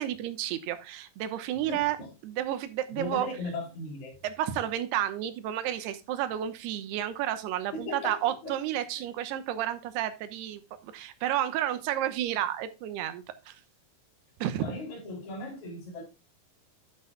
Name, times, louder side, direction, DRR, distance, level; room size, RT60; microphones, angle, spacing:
voice 1, 0.0-2.0 2.2-3.3 4.2-13.6 14.4-14.8, right 12 dB, 85° right, 3.0 m, -31 dB
voice 2, 1.7-2.1 2.9-4.1 7.7-8.5 9.0-9.1 14.6-16.0, left 2 dB, 45° left, 4.8 m, -37 dB
12.5 x 8.8 x 2.2 m
omnidirectional pair, 4.7 m